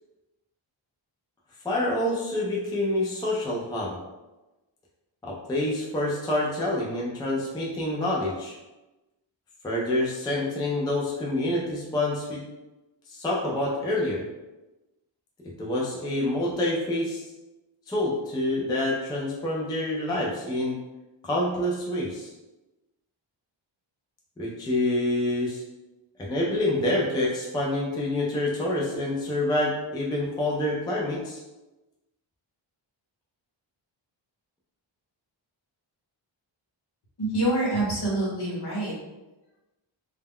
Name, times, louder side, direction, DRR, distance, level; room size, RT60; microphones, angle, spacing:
voice 1, 1.6-4.0 5.2-8.5 9.6-12.4 13.1-14.2 15.6-17.3 17.9-20.8 21.2-22.3 24.4-25.6 26.2-31.4, left 1 dB, 10° left, -4 dB, 0.3 m, -27 dB
voice 2, 37.2-38.9, right 1 dB, 55° left, -5 dB, 1.0 m, -26 dB
2.2 x 2.1 x 3.5 m, 1.1 s
wide cardioid pair, 140°, 47 cm